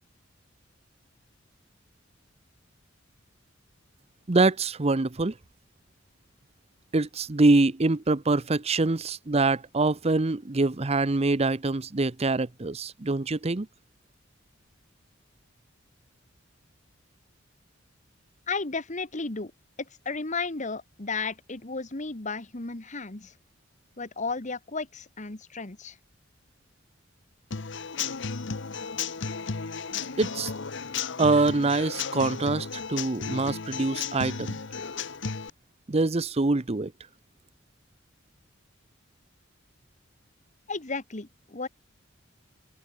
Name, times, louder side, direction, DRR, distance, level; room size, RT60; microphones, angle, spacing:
voice 1, 4.3-5.3 6.9-13.7 30.2-30.5 31.2-34.5 35.9-36.9, right 3 dB, 30° right, 0.7 m, -24 dB
voice 2, 18.5-19.5 20.0-23.3 24.0-26.0 40.7-41.7, left 4 dB, 40° left, 1.6 m, -33 dB
Human voice / Acoustic guitar / Drum, 27.5-35.5, left 5 dB, 65° left, 1.0 m, -34 dB
head